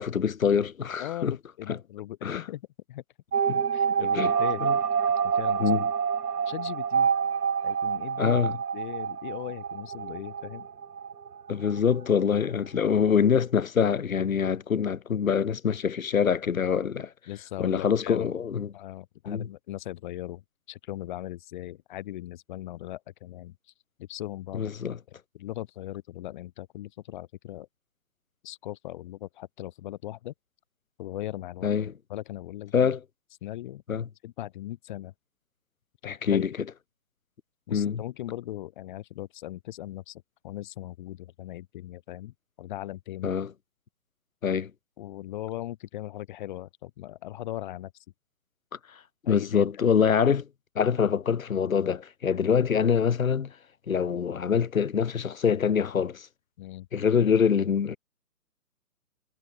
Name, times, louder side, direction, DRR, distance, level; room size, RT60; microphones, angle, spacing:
voice 1, 0.0-1.4 1.7-1.8 2.2-2.4 3.5-3.6 4.1-4.3 4.6-4.7 5.6-5.9 8.2-8.6 11.5-17.1 17.6-18.7 19.3-19.5 24.5-25.0 31.6-31.9 32.7-33.0 33.9-34.1 36.0-36.5 37.7-38.0 43.2-43.5 44.4-44.7 49.3-50.5 50.7-53.5 53.9-56.3 56.9-58.0, left 7 dB, 60° left, 4.8 m, -25 dB
voice 2, 1.0-3.0 3.7-4.6 5.2-5.6 6.4-7.1 7.6-8.4 8.7-10.7 17.3-18.3 18.7-20.4 20.7-23.5 24.1-24.6 25.3-27.7 28.4-30.3 31.0-31.7 32.1-32.9 33.4-33.8 34.2-35.1 36.0-36.4 37.7-43.4 45.0-47.9 49.2-49.7 56.6-56.9, left 14 dB, 30° left, 5.1 m, -38 dB
sound 1, 3.3-11.8 12.1-12.2 12.4-12.5, right 7 dB, 85° right, 1.5 m, -27 dB
hypercardioid pair, 155°, 46 cm